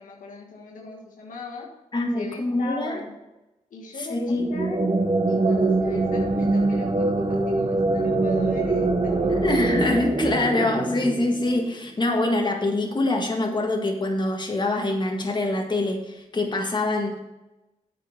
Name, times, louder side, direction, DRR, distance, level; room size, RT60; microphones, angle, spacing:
voice 1, 0.0-1.7 2.1-3.1 3.7-4.8 5.3-9.7, left 3 dB, 85° left, -1 dB, 1.5 m, -38 dB
voice 2, 1.9-3.0 4.0-4.5 9.3-17.2, left 2 dB, 35° left, 2 dB, 1.8 m, -25 dB
sound 1, 4.3-11.7, right 2 dB, 40° right, 1.3 m, -23 dB
8.2 x 5.5 x 6.8 m, 0.99 s
cardioid pair, 50°, 13 cm